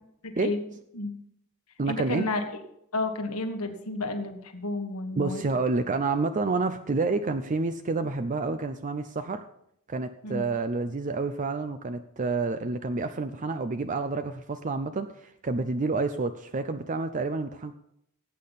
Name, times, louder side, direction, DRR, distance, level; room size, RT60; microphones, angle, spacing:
voice 1, 0.2-0.6 0.9-1.1 1.8-2.4 2.9-5.4 10.2-10.4, left 2 dB, 90° left, 6 dB, 1.6 m, -31 dB
voice 2, 1.8-2.3 5.2-9.4 9.9-17.7, right 3 dB, 35° right, 9 dB, 0.5 m, -29 dB
17.0 x 8.6 x 4.1 m, 0.75 s
head